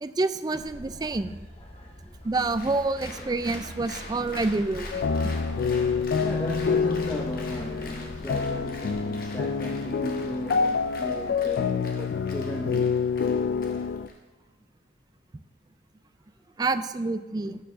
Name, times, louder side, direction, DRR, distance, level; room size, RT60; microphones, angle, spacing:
voice 1, 0.0-1.3 2.2-5.1 12.0-12.1 16.6-17.6, right 3 dB, 20° right, 11 dB, 0.3 m, -28 dB
sound 1, 0.6-9.1, equal, 35° left, 1.2 m, -44 dB
Applause, 2.5-14.2, left 2 dB, 55° left, 1.3 m, -45 dB
sound 2, 4.9-14.1, left 5 dB, 70° left, 0.3 m, -27 dB
voice 2, 6.2-11.8 12.3-13.1, equal, 15° left, -2 dB, 0.6 m, -35 dB
9.2 x 4.6 x 6.0 m, 1.2 s
head